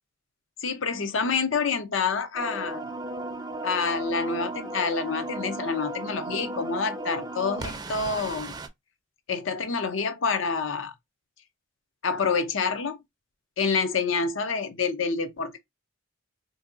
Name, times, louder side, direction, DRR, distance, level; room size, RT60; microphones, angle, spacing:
voice 1, 0.6-2.9 3.6-8.5 9.3-10.9 12.0-13.0 13.6-15.6, left 5 dB, 80° left, 0.7 m, -27 dB
sound 1, 2.3-8.7, right 2 dB, 20° right, 0.4 m, -35 dB
3.6 x 2.8 x 2.4 m
head